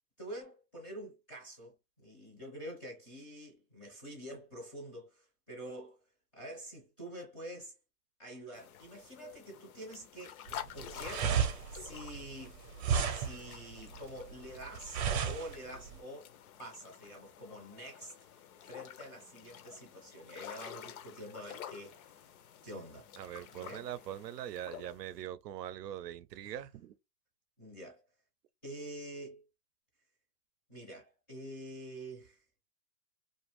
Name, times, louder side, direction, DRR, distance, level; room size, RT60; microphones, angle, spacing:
voice 1, 0.2-6.0 6.3-7.7 8.2-11.4 11.7-16.3 16.6-22.3 22.6-23.1 23.5-23.9 26.4-26.6 27.6-28.0 28.6-29.5 30.7-32.4, right 1 dB, 10° left, 0.4 m, -47 dB
sound 1, 8.5-25.2, left 10 dB, 65° left, 0.5 m, -50 dB
sound 2, 10.5-16.0, right 7 dB, 45° right, 0.6 m, -33 dB
voice 2, 23.2-26.9, right 11 dB, 80° right, 0.6 m, -42 dB
2.5 x 2.4 x 3.1 m
hypercardioid pair, 155°, 48 cm